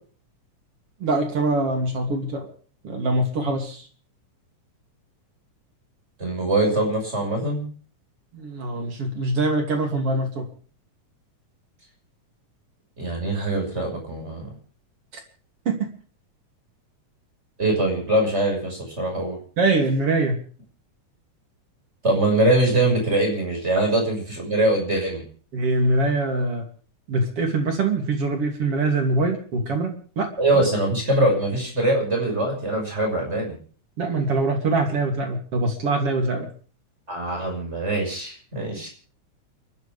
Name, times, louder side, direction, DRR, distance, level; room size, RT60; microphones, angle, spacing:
voice 1, 1.0-2.5 2.8-3.9 8.3-10.5 15.7-15.9 19.6-20.4 25.5-26.6 27.1-30.3 34.0-36.5, right 2 dB, 50° right, 2 dB, 3.8 m, -23 dB
voice 2, 6.2-7.7 13.0-14.5 17.6-19.4 22.0-25.2 30.4-33.6 37.1-38.9, right 1 dB, 20° right, 0 dB, 6.6 m, -23 dB
29.5 x 12.5 x 3.5 m, 0.43 s
omnidirectional pair, 3.6 m